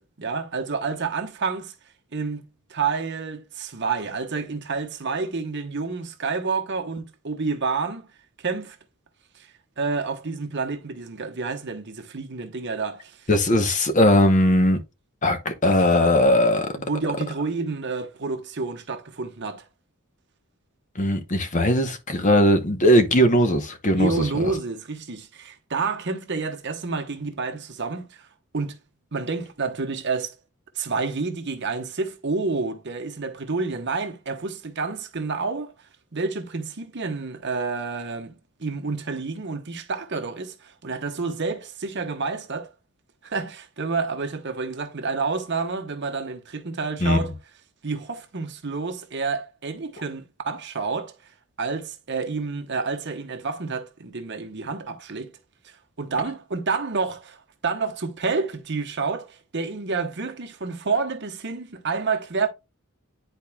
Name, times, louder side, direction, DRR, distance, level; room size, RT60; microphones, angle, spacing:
voice 1, 0.0-1.7 2.1-8.1 8.4-8.8 9.3-9.5 9.8-13.3 16.7-19.7 24.0-28.3 28.5-28.8 29.1-30.3 30.7-35.7 36.1-42.7 43.2-47.3 47.8-51.1 51.6-55.3 55.6-62.5, right 4 dB, 50° right, 1.0 m, -29 dB
voice 2, 13.3-14.8 15.2-16.7 20.9-24.5 47.0-47.2, left 1 dB, 35° left, 0.9 m, -19 dB
10.5 x 4.3 x 2.3 m
head